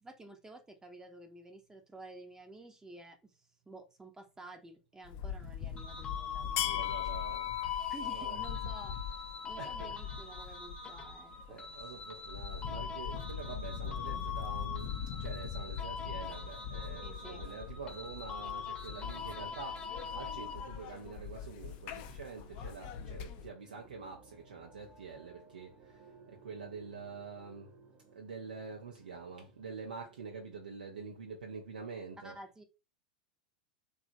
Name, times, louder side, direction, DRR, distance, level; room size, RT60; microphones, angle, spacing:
voice 1, 0.0-6.9 7.9-11.6 17.0-17.5 32.2-32.6, right 2 dB, 10° right, 0.6 m, -52 dB
sound 1, 5.0-23.5, left 9 dB, 50° left, 0.5 m, -41 dB
sound 2, 5.8-21.0, left 6 dB, 20° left, 0.8 m, -43 dB
voice 2, 6.6-8.4 9.6-10.0 10.2-10.5 11.5-27.7 28.1-32.4, right 5 dB, 80° right, 0.5 m, -46 dB
sound 3, 15.3-30.5, right 5 dB, 40° right, 1.0 m, -60 dB
2.8 x 2.3 x 2.5 m
hypercardioid pair, 95°, 5 cm